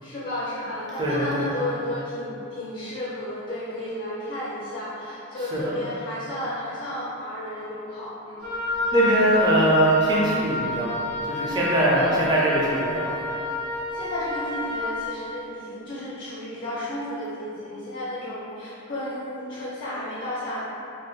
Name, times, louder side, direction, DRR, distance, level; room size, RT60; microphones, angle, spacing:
voice 1, 0.0-8.5 12.0-12.4 13.9-20.6, left 1 dB, 40° left, -9 dB, 0.4 m, -32 dB
voice 2, 1.0-1.5 5.5-5.7 8.9-10.9 11.3-13.1, right 1 dB, 20° right, -6 dB, 0.4 m, -22 dB
Wind instrument woodwind instrument, 8.4-14.9, left 2 dB, 85° left, 1.0 m, -29 dB
3.2 x 2.1 x 2.3 m, 2.8 s
head